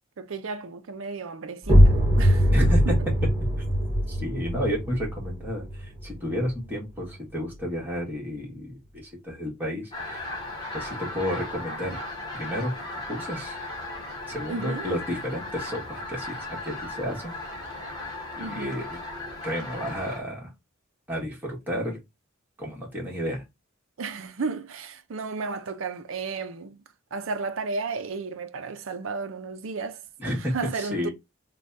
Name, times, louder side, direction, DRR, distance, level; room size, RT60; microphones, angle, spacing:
voice 1, 0.2-2.5 2.9-3.0 14.5-14.9 18.4-18.8 24.0-26.8 27.1-31.1, right 4 dB, 70° right, 0.5 m, -33 dB
sound 1, 1.6-7.2, equal, 25° right, 1.5 m, -22 dB
voice 2, 2.5-2.9 4.1-10.3 10.7-12.0 12.3-12.7 13.1-13.6 14.3-17.3 18.3-19.0 19.4-20.5 21.1-22.0 22.6-23.4 30.2-31.1, equal, 10° right, 1.6 m, -31 dB
sound 2, 9.9-20.2, left 2 dB, 20° left, 1.3 m, -36 dB
3.3 x 2.3 x 3.9 m
head